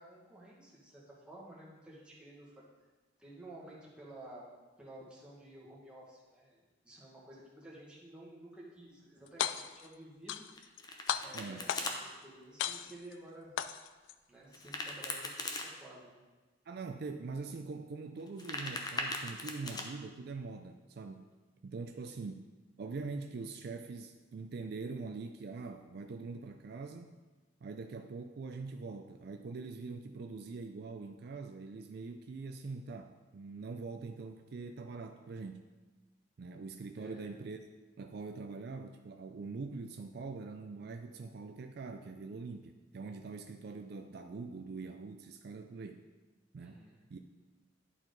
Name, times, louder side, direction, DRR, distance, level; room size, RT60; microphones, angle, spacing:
voice 1, 0.0-2.5 3.2-4.4 4.8-10.4 11.2-13.5 14.3-16.2 21.9-22.1 37.0-37.3 46.6-47.0, right 1 dB, 5° right, -6 dB, 1.5 m, -53 dB
sound 1, 9.3-9.9 10.3-10.8 11.1-12.1 12.6-13.1 13.6-14.1, left 9 dB, 80° left, 0.3 m, -36 dB
Domestic sounds home sounds, 10.6-12.0 14.5-15.7 18.2-19.8, left 2 dB, 20° left, 0.7 m, -39 dB
voice 2, 11.3-11.7 16.7-21.3 21.6-22.5 22.8-27.1 27.6-35.7 36.4-37.6 38.0-46.0 46.5-46.8 47.1-47.2, right 4 dB, 55° right, 6 dB, 0.4 m, -43 dB
10.5 x 4.5 x 3.9 m, 1.3 s
head